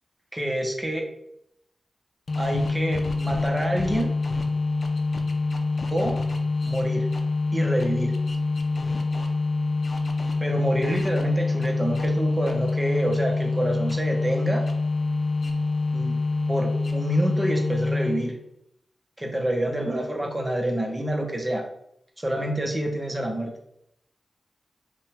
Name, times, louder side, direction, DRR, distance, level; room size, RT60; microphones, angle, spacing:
voice 1, 0.3-1.1 2.4-4.1 5.9-6.2 6.7-7.1 7.5-8.1 10.4-14.6 15.9-16.2 16.5-18.4 19.2-21.7 22.2-23.5, right 1 dB, 15° right, 2 dB, 0.9 m, -27 dB
sound 1, 2.3-18.4, left 3 dB, 65° left, 0.5 m, -26 dB
5.4 x 2.3 x 3.4 m, 0.74 s
wide cardioid pair, 85°, 0 cm